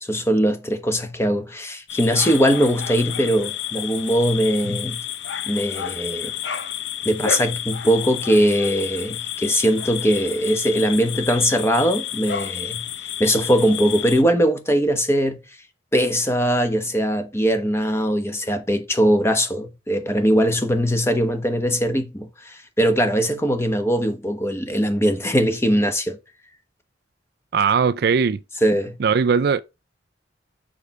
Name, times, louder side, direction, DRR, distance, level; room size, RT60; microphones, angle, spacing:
voice 1, 0.0-5.0 5.5-6.3 7.0-12.9 13.2-15.4 15.9-26.2 28.6-29.0, equal, 15° left, 1.1 m, -21 dB
sound 1, 1.9-14.2, left 10 dB, 70° left, 0.6 m, -31 dB
voice 2, 27.5-28.4 29.0-29.6, right 6 dB, 60° right, 0.4 m, -19 dB
6.7 x 5.5 x 4.7 m
head